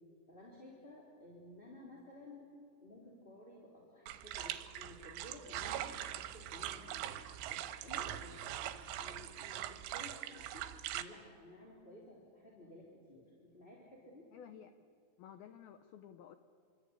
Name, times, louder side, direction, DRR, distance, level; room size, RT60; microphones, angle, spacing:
voice 1, 0.3-2.5 2.8-7.1 7.5-10.7 10.9-14.3, left 1 dB, 15° left, -4 dB, 3.2 m, -55 dB
sound 1, 4.1-11.0, right 12 dB, 80° right, 3.5 m, -42 dB
voice 2, 14.3-14.7 15.2-16.4, left 9 dB, 85° left, 8 dB, 2.2 m, -53 dB
27.5 x 25.0 x 8.4 m, 2.3 s
omnidirectional pair, 5.7 m